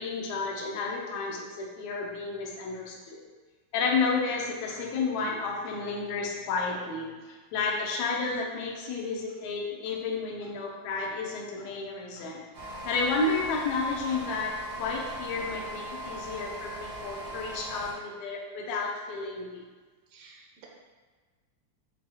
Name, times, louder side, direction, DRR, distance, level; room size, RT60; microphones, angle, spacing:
voice 1, 0.0-3.2 3.7-12.4 12.8-19.6, left 4 dB, 75° left, -1 dB, 2.0 m, -31 dB
sound 1, 12.5-17.9, right 1 dB, 45° right, 1.1 m, -39 dB
voice 2, 20.1-20.6, right 5 dB, 75° right, -1 dB, 1.4 m, -53 dB
7.4 x 3.1 x 2.3 m, 1.4 s
omnidirectional pair, 3.3 m